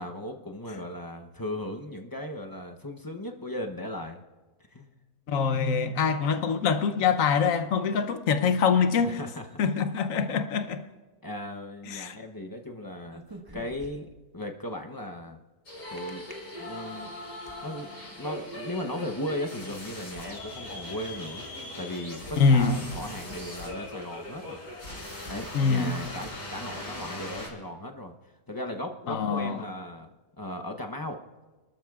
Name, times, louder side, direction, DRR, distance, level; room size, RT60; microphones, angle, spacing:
voice 1, 0.0-4.2 4.7-5.0 9.0-9.5 10.1-10.2 11.2-13.2 13.5-15.4 15.9-16.2 16.6-17.1 17.6-17.9 18.2-21.5 21.8-24.6 24.9-28.1 28.5-30.1 30.4-31.2, left 1 dB, 25° left, 0.4 m, -37 dB
voice 2, 5.3-9.2 9.6-10.8 11.9-12.2 22.4-22.8 25.5-26.0 29.1-29.6, left 5 dB, 65° left, 1.1 m, -24 dB
sound 1, 13.0-14.3 16.0-16.3 16.9-17.6, right 2 dB, 15° right, 1.2 m, -46 dB
sound 2, 15.7-27.5, left 1 dB, 90° left, 5.0 m, -40 dB
28.0 x 13.0 x 2.4 m
omnidirectional pair, 1.6 m